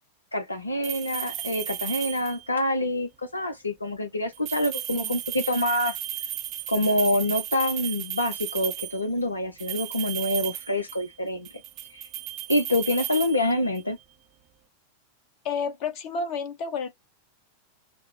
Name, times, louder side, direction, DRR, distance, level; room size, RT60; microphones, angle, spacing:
voice 1, 0.3-6.0 6.7-11.5 11.9-12.1 12.5-14.0, left 1 dB, 80° left, 0.5 m, -26 dB
sound 1, 0.8-2.6 4.3-9.1 9.6-11.1 11.4-13.9, right 12 dB, 40° right, 0.6 m, -34 dB
voice 2, 15.4-16.9, left 5 dB, 45° left, 1.1 m, -30 dB
5.8 x 2.0 x 3.0 m
figure-of-eight pair, 90°, 0 cm